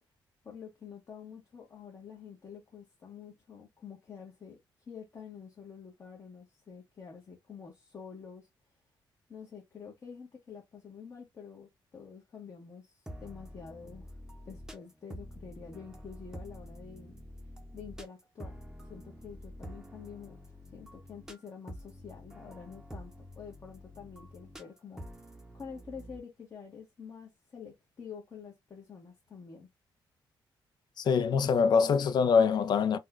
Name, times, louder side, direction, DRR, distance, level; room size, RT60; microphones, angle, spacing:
voice 1, 0.4-4.6 4.9-8.5 9.3-14.2 14.4-17.2 17.7-18.6 18.8-20.4 20.7-25.2 25.5-29.7, left 6 dB, 35° left, 1.0 m, -48 dB
sound 1, 13.1-26.2, equal, 5° right, 0.7 m, -48 dB
voice 2, 31.0-33.0, left 6 dB, 60° left, 0.5 m, -24 dB
4.1 x 2.2 x 2.4 m
cardioid pair, 120°, 8 cm